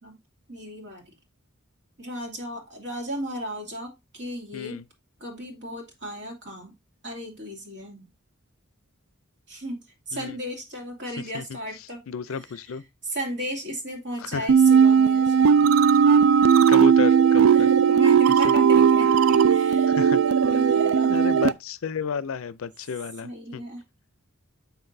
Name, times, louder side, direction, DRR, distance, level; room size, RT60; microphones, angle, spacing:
voice 1, 0.5-1.1 2.0-4.8 5.2-6.8 7.0-8.0 9.5-12.0 12.3-12.5 13.0-15.8 17.5-21.2 23.2-23.8, equal, 60° right, 2.4 m, -35 dB
voice 2, 4.5-4.8 10.1-10.4 11.3-11.6 12.1-12.8 14.2-14.5 16.7-17.7 19.9-20.2 21.1-23.6, left 6 dB, 75° left, 0.4 m, -31 dB
sound 1, 14.5-21.5, right 7 dB, 75° right, 0.4 m, -17 dB
7.0 x 5.8 x 2.7 m
head